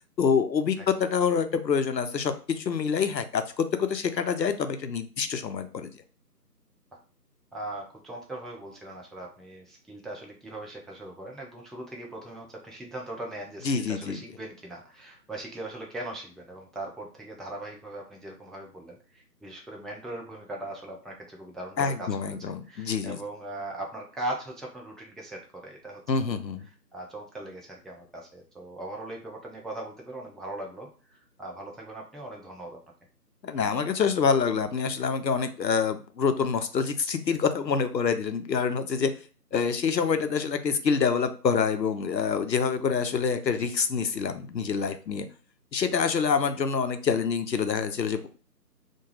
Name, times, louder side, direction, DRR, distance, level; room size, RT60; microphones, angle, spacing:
voice 1, 0.2-5.9 13.6-14.2 21.8-23.2 26.1-26.7 33.4-39.1 39.5-45.3 45.7-48.3, left 6 dB, 80° left, 8 dB, 0.6 m, -26 dB
voice 2, 7.5-26.0 26.3-26.4 26.6-32.8, right 1 dB, ahead, -1 dB, 0.4 m, -40 dB
2.3 x 2.2 x 3.1 m, 0.37 s
figure-of-eight pair, 160°, 50 cm